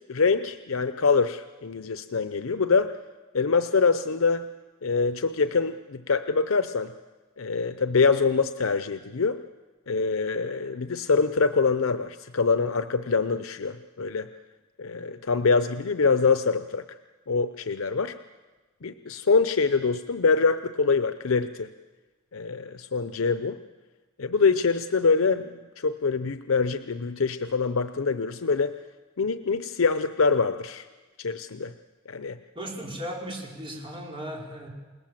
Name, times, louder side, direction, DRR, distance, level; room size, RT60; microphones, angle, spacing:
voice 1, 0.1-3.0 3.3-4.5 4.8-6.9 7.4-9.4 9.9-14.3 14.8-17.0 17.3-18.2 18.8-21.7 22.3-23.6 24.2-28.8 29.2-30.9 31.2-31.7 32.1-32.4, left 4 dB, 85° left, 11 dB, 0.7 m, -24 dB
voice 2, 32.5-34.7, equal, 25° right, -1 dB, 5.1 m, -36 dB
28.5 x 18.5 x 7.4 m, 1.3 s
head